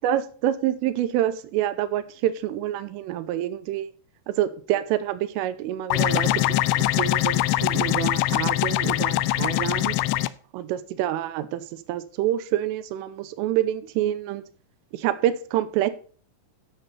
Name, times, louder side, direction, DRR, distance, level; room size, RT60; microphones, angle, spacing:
voice 1, 0.0-3.9 4.3-10.0 10.5-14.4 14.9-15.9, right 12 dB, 85° right, 3.3 m, -27 dB
sound 1, 5.9-10.3, left 16 dB, 85° left, 2.6 m, -23 dB
13.0 x 6.7 x 4.1 m
omnidirectional pair, 6.0 m